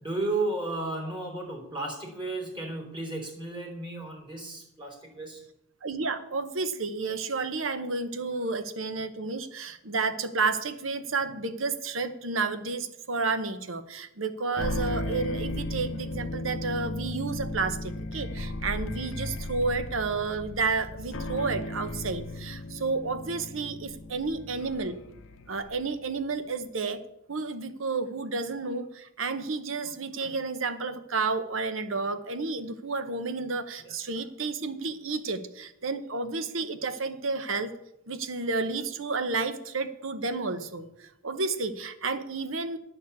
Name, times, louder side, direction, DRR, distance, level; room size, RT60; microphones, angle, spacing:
voice 1, 0.0-5.4 33.8-34.0, right 2 dB, 25° right, 0 dB, 3.6 m, -33 dB
voice 2, 5.8-25.0 25.5-27.0 27.3-37.7 38.1-42.8, right 4 dB, 75° right, 10 dB, 1.0 m, -31 dB
sound 1, 14.6-25.9, left 1 dB, 75° left, 0.9 m, -36 dB
10.0 x 7.0 x 8.2 m, 0.82 s
head